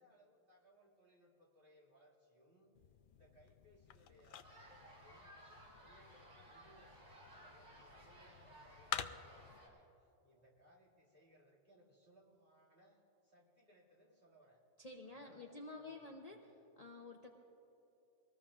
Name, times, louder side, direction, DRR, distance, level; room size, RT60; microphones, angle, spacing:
voice 1, 0.0-2.7 3.1-5.3 5.8-7.1 7.4-14.6 15.0-16.4, equal, 40° right, -4 dB, 2.5 m, -68 dB
sound 1, 2.7-9.6, left 9 dB, 85° left, 0.4 m, -50 dB
sound 2, 4.4-9.7, right 1 dB, 70° right, 3.4 m, -59 dB
voice 2, 14.8-16.5 16.8-17.3, left 2 dB, 35° left, 1 dB, 0.7 m, -51 dB
23.5 x 19.5 x 2.5 m, 3.0 s
omnidirectional pair, 1.4 m